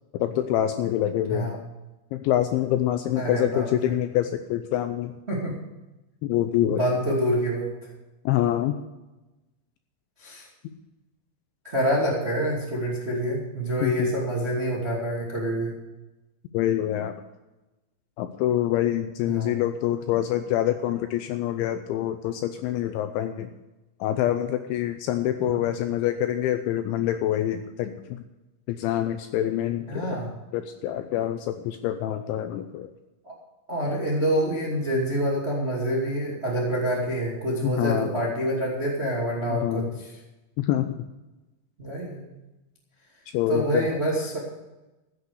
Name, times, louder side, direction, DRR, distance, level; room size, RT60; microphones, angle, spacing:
voice 1, 0.1-1.6 2.1-5.1 6.2-6.8 8.3-8.7 13.8-14.1 16.5-17.2 18.2-23.5 24.0-28.2 28.7-30.2 30.5-32.9 37.6-38.1 39.5-39.9 40.6-41.1 43.3-44.0, left 12 dB, 80° left, 8 dB, 2.7 m, -26 dB
voice 2, 1.3-1.6 3.1-3.7 5.3-5.5 6.6-7.7 10.2-10.5 11.6-15.7 19.2-19.6 25.4-25.7 29.9-30.3 33.2-33.3 33.7-40.2 41.8-42.2 43.5-44.4, right 1 dB, 30° right, -3 dB, 1.2 m, -27 dB
14.5 x 8.3 x 6.7 m, 1.0 s
omnidirectional pair, 5.9 m